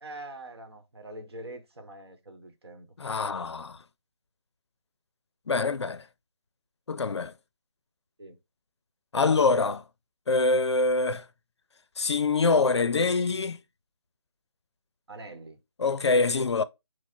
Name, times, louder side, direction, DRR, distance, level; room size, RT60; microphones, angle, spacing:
voice 1, 0.0-2.9 8.2-8.4 15.1-15.6, right 1 dB, 60° right, 1.0 m, -44 dB
voice 2, 3.0-3.8 5.5-6.0 6.9-7.3 9.1-9.8 10.3-11.3 12.0-13.6 15.8-16.6, left 3 dB, 65° left, 0.4 m, -25 dB
4.6 x 2.0 x 4.3 m
figure-of-eight pair, 170°, 15 cm